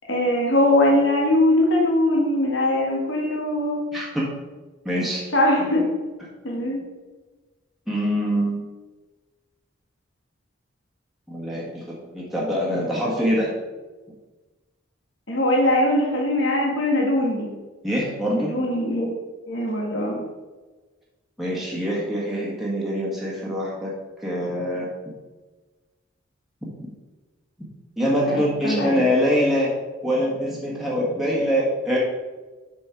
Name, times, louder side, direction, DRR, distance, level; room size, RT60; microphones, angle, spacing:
voice 1, 0.1-3.8 5.3-5.8 6.4-6.8 15.3-17.5 18.3-19.1 19.5-20.2 28.3-29.0, left 1 dB, 65° left, -2 dB, 1.8 m, -21 dB
voice 2, 3.9-4.3 4.8-5.2 5.6-5.7 7.9-8.6 11.3-13.5 17.8-18.5 21.4-23.9 24.2-24.9 26.6-26.7 28.0-29.7 30.0-32.0, equal, ahead, -6 dB, 1.5 m, -24 dB
6.4 x 6.3 x 4.6 m, 1.3 s
head